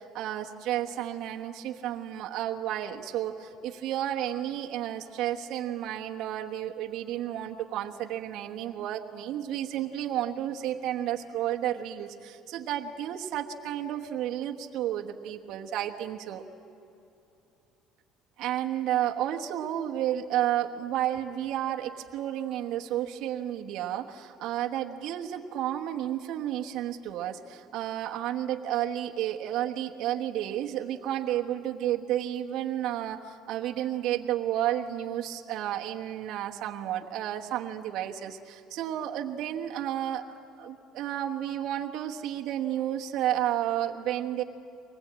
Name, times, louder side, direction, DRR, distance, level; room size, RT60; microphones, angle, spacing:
voice 1, 0.0-16.4 18.4-40.2 40.6-44.4, right 11 dB, 60° right, 1 dB, 1.2 m, -31 dB
24.0 x 20.0 x 8.8 m, 2.9 s
cardioid pair, 150°, 0 cm